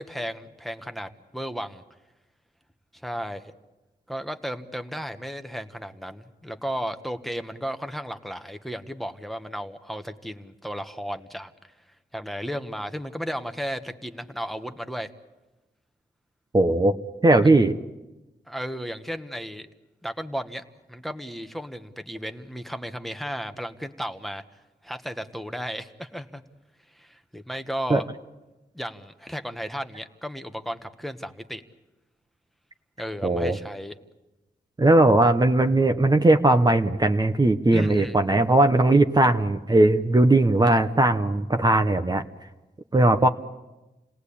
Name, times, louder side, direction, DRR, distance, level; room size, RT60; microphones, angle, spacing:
voice 1, 0.0-1.8 3.0-3.5 4.1-11.7 12.1-15.1 17.4-17.5 18.5-19.7 20.0-20.6 20.9-24.4 24.8-26.4 26.9-28.0 28.7-31.6 33.0-33.9 37.7-38.2, equal, ahead, 8 dB, 1.2 m, -34 dB
voice 2, 16.5-16.9 17.2-17.7 27.9-28.0 33.2-33.6 34.8-42.2 42.9-43.3, right 2 dB, 25° right, 6 dB, 1.0 m, -19 dB
29.0 x 18.5 x 8.6 m, 1.1 s
wide cardioid pair, 105°, 17 cm